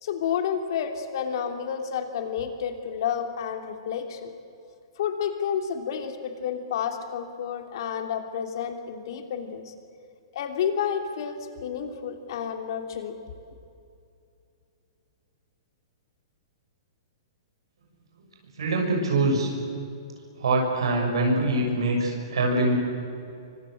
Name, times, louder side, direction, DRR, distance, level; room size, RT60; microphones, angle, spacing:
voice 1, 0.0-4.3 5.0-9.7 10.3-13.2, left 8 dB, 60° left, 5 dB, 3.2 m, -30 dB
voice 2, 18.6-19.5 20.4-22.7, right 2 dB, 90° right, 0 dB, 6.4 m, -24 dB
26.5 x 24.5 x 7.9 m, 2.6 s
hypercardioid pair, 150°, 3 cm